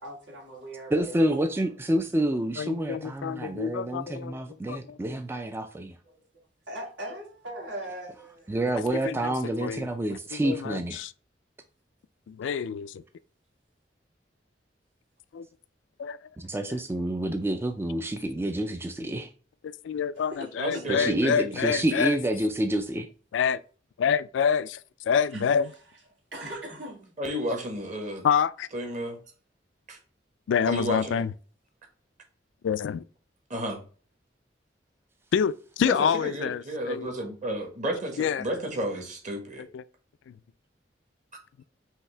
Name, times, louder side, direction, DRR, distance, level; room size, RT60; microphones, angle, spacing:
voice 1, 0.0-2.1 2.6-3.0 6.0-6.2 6.7-8.8 20.1-21.3 25.3-25.8 26.3-27.1, right 1 dB, 80° right, 2.2 m, -41 dB
voice 2, 0.9-5.9 8.5-11.0 16.4-19.3 21.0-23.1, right 1 dB, 15° right, 0.3 m, -28 dB
voice 3, 2.6-5.0 8.9-11.1 12.3-13.0 15.3-15.5 16.0-16.3 16.6-16.7 19.6-22.2 23.3-23.6 24.0-25.6 28.2-28.7 30.5-31.3 32.6-33.0 35.3-37.1 38.2-38.4 39.7-39.8 40.3-40.4 41.6-41.7, left 7 dB, 85° left, 0.3 m, -27 dB
voice 4, 20.6-21.6 27.2-28.2 28.7-29.2 29.9-30.0 30.6-31.2 33.5-33.8 35.8-39.7, equal, 45° right, 1.4 m, -32 dB
5.7 x 2.8 x 3.3 m
head